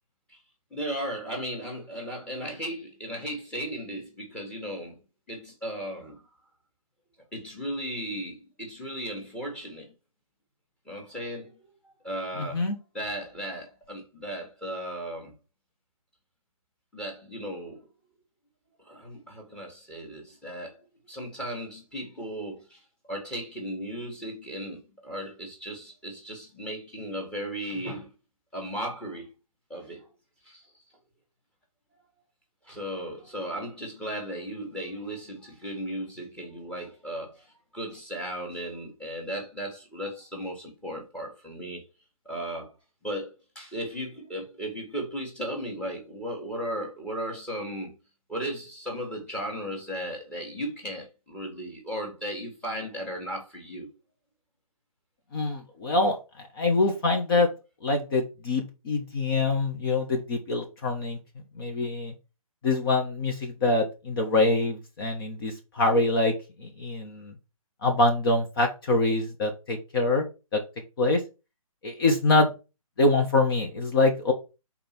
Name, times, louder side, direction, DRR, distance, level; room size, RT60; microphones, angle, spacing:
voice 1, 0.7-4.9 5.3-6.2 7.3-9.9 10.9-11.7 12.0-12.6 12.9-15.3 16.9-17.8 18.9-22.8 23.1-28.1 28.5-29.3 29.7-30.1 30.4-30.6 32.7-41.8 42.3-42.7 43.0-47.9 48.3-53.9, equal, 5° left, 1.8 m, -36 dB
voice 2, 12.4-12.8 55.3-57.5 57.8-61.2 61.5-62.1 62.6-67.3 67.8-70.2 70.5-70.6 71.0-71.2 71.8-72.5 73.0-74.3, left 2 dB, 40° left, 1.4 m, -25 dB
5.2 x 4.3 x 6.0 m
hypercardioid pair, 155°, 18 cm